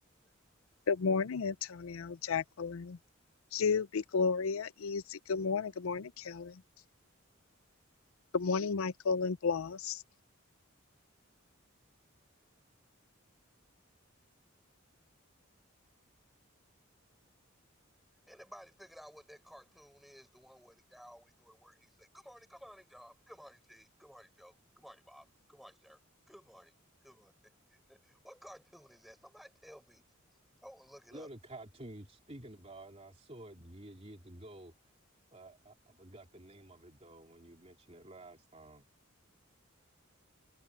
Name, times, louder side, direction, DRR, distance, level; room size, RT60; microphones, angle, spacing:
voice 1, 0.9-3.0 3.5-6.6 8.3-10.0, left 5 dB, 80° left, 0.5 m, -33 dB
voice 2, 18.3-26.0 26.3-26.7 27.0-27.3 27.7-30.0 30.6-31.3, equal, ahead, 6.5 m, -55 dB
voice 3, 31.1-34.7 35.3-38.9, right 1 dB, 30° right, 3.2 m, -51 dB
head